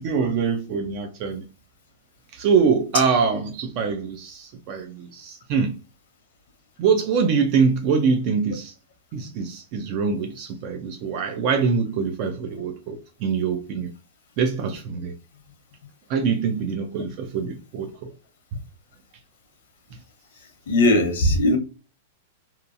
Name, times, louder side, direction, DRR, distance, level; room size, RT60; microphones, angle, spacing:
voice 1, 0.0-1.4 2.4-5.7 6.8-8.7 9.1-13.9 14.4-15.1 16.1-18.1, right 5 dB, 35° right, 0.3 m, -24 dB
voice 2, 20.7-21.6, left 1 dB, 75° left, 0.8 m, -18 dB
2.7 x 2.2 x 2.5 m
supercardioid pair, 170°, 0 cm